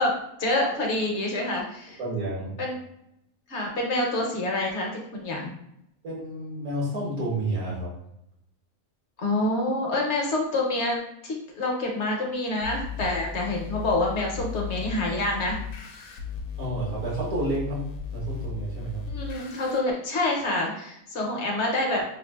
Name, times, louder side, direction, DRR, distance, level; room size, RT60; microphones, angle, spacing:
voice 1, 0.0-1.6 2.6-2.8 3.5-5.5 9.2-15.6 19.1-22.0, left 2 dB, 60° left, 0 dB, 1.0 m, -27 dB
voice 2, 2.0-2.6 6.0-7.9 16.6-17.8 18.1-19.0, right 2 dB, 70° right, -7 dB, 1.6 m, -30 dB
sound 1, 12.6-19.8, left 6 dB, 85° left, 1.1 m, -36 dB
5.3 x 2.4 x 2.3 m, 0.79 s
omnidirectional pair, 1.5 m